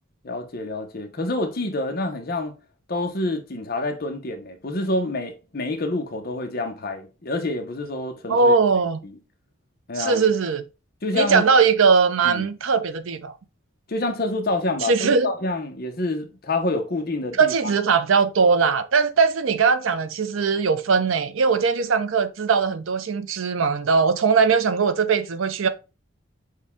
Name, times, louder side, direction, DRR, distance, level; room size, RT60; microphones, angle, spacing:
voice 1, 0.2-2.5 2.9-8.5 9.0-9.2 9.9-10.2 11.0-11.4 12.2-12.5 13.9-17.7, left 2 dB, 50° left, 0.8 m, -27 dB
voice 2, 8.3-9.0 10.0-10.6 11.1-13.3 14.8-15.3 17.4-25.7, right 5 dB, 85° right, 0.6 m, -20 dB
6.4 x 2.2 x 3.5 m
head